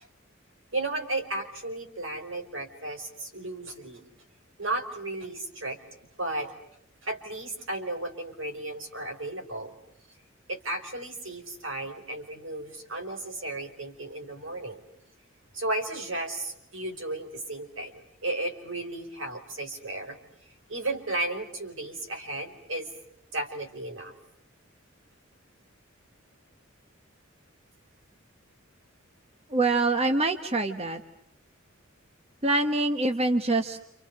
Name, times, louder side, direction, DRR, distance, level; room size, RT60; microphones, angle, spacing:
voice 1, 0.7-4.0 4.6-5.8 6.2-6.5 7.0-9.7 10.5-14.8 15.5-20.2 20.7-22.9 23.3-24.1, right 2 dB, 70° right, 5 dB, 4.7 m, -34 dB
voice 2, 29.5-31.0 32.4-33.9, right 2 dB, 30° right, 6 dB, 1.2 m, -25 dB
29.5 x 29.5 x 6.5 m, 0.73 s
head